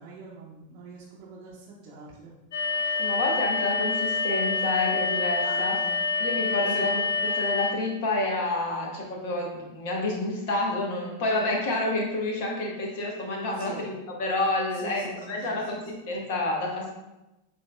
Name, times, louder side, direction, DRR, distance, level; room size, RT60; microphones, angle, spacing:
voice 1, 0.0-2.3 5.4-6.0 6.7-6.9 8.7-8.9 13.6-13.8 14.8-15.6, right 4 dB, 40° right, -6 dB, 0.8 m, -43 dB
sound 1, 2.5-7.7, left 4 dB, 65° left, 0.7 m, -27 dB
voice 2, 3.0-5.7 6.2-13.9 14.2-16.9, left 2 dB, 50° left, -1 dB, 1.2 m, -29 dB
7.6 x 2.7 x 2.2 m, 0.99 s
figure-of-eight pair, 90°, 0 cm